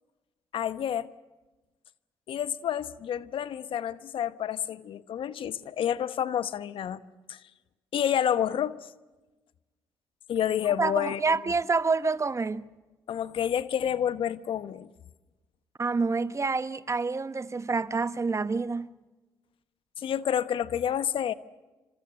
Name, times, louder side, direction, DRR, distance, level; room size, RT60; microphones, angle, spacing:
voice 1, 0.5-1.1 2.3-7.0 7.3-7.4 7.9-8.9 10.3-11.4 13.1-14.9 20.0-21.3, left 9 dB, 60° left, 1.0 m, -29 dB
voice 2, 10.8-12.6 15.8-18.9, right 4 dB, 30° right, 1.1 m, -27 dB
27.0 x 27.0 x 6.5 m
hypercardioid pair, 55°, 10 cm